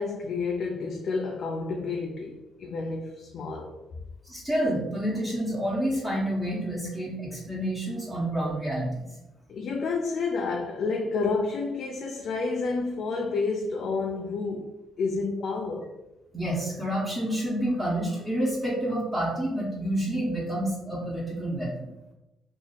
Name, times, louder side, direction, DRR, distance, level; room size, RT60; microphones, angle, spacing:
voice 1, 0.0-3.7 9.5-14.7 15.0-15.9, left 4 dB, 65° left, 0.4 m, -30 dB
voice 2, 4.2-9.1 16.3-21.9, right 1 dB, 10° right, 1.3 m, -29 dB
2.9 x 2.7 x 4.0 m
cardioid pair, 90°, 0 cm